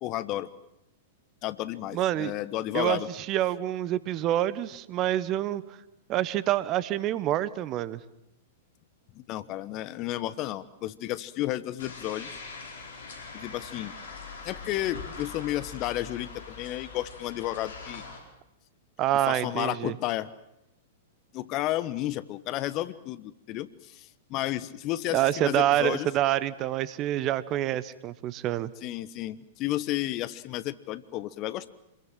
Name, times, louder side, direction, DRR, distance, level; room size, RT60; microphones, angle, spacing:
voice 1, 0.0-0.5 1.4-3.1 9.1-12.4 13.3-13.9 14.4-18.0 19.3-20.3 21.3-26.1 28.8-31.7, left 15 dB, 35° left, 15 dB, 1.1 m, -32 dB
voice 2, 1.9-2.3 2.7-5.6 6.1-8.0 19.0-20.0 25.1-28.7, right 13 dB, 35° right, 17 dB, 1.1 m, -27 dB
sound 1, 11.8-18.2, left 4 dB, 60° left, 4.8 m, -42 dB
26.5 x 21.5 x 7.5 m, 0.85 s
figure-of-eight pair, 100°, 0 cm